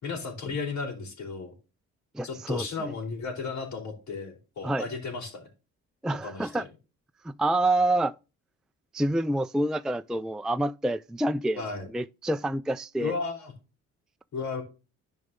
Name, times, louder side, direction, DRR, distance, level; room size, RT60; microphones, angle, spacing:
voice 1, 0.0-1.5 2.2-5.5 6.2-6.7 11.5-11.9 13.0-13.5 14.3-14.6, left 4 dB, 65° left, 4.2 m, -34 dB
voice 2, 2.2-2.9 4.6-4.8 6.0-6.6 7.2-8.1 8.9-11.6 11.9-13.1, right 1 dB, ahead, 0.4 m, -27 dB
11.0 x 5.4 x 3.7 m
cardioid pair, 90°, 30 cm